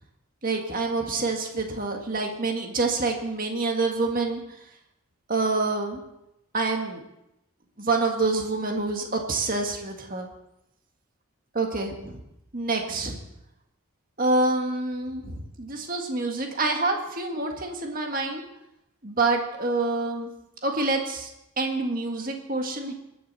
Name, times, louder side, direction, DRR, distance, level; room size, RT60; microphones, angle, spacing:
voice 1, 0.4-4.4 5.3-6.0 6.5-7.0 7.8-10.3 11.5-12.2 12.5-13.2 14.2-18.4 19.0-20.3 20.6-21.3 21.6-22.9, right 3 dB, 40° right, 3 dB, 1.8 m, -27 dB
21.5 x 10.5 x 4.2 m, 0.84 s
head